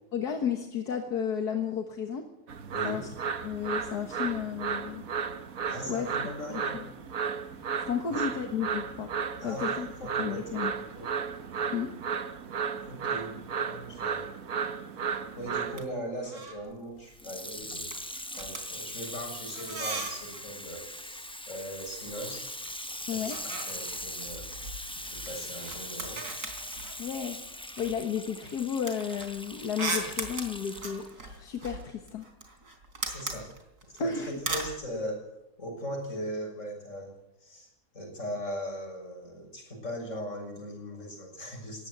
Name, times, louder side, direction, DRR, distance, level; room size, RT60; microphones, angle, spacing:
voice 1, 0.1-2.2 2.8-3.1 3.4-5.0 5.9-6.1 7.8-9.1 9.4-9.9 10.2-10.7 11.7-11.9 23.1-23.4 27.0-32.3 34.0-34.4, left 7 dB, 80° left, 4 dB, 2.0 m, -32 dB
sound 1, 2.5-15.8, right 6 dB, 60° right, 1.6 m, -34 dB
voice 2, 2.7-3.0 5.7-6.8 8.0-8.1 8.4-8.5 9.4-9.7 10.0-10.6 10.9-11.1 12.9-13.3 13.6-14.3 15.4-22.4 23.1-24.5 25.1-26.2 33.1-33.5 33.8-35.2 35.6-37.1 37.4-37.7 37.9-41.9, equal, 50° left, 2 dB, 7.2 m, -39 dB
sound 2, 15.6-15.9 16.1-16.7 17.0-17.3 17.6-20.5 21.7-22.7 23.0-27.3 27.7-34.8, right 3 dB, 80° right, 4.2 m, -39 dB
Water tap faucet / Sink (filling or washing), 17.1-31.1 31.8-31.9, left 1 dB, 5° left, 0.6 m, -41 dB
21.0 x 17.0 x 8.0 m, 0.88 s
omnidirectional pair, 1.7 m